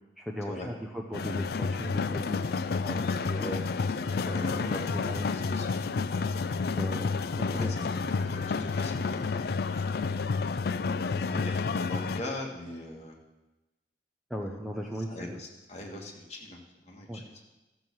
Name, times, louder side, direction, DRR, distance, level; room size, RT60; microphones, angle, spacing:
voice 1, 0.2-3.5 4.3-4.4 4.9-5.2 6.8-7.7 14.3-15.4 17.1-17.2, equal, ahead, 0 dB, 0.7 m, -38 dB
sound 1, 1.1-12.2, left 4 dB, 55° left, 0.4 m, -30 dB
voice 2, 3.3-3.6 4.0-5.8 7.5-10.4 11.3-13.2 15.1-17.2, left 1 dB, 35° left, -1 dB, 1.9 m, -41 dB
13.5 x 7.2 x 6.2 m, 1.0 s
head